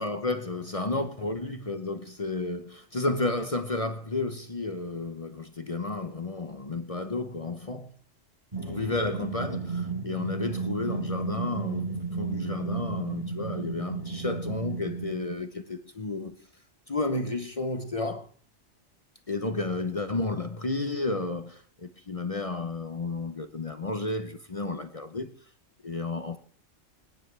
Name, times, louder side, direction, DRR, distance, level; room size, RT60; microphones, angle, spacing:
voice 1, 0.0-7.9 8.7-11.9 12.1-16.3 16.9-18.3 19.3-25.3 25.8-26.4, left 2 dB, 30° left, 0.8 m, -32 dB
sound 1, 8.5-15.3, right 4 dB, 30° right, 5.3 m, -33 dB
25.0 x 10.5 x 3.3 m
omnidirectional pair, 1.3 m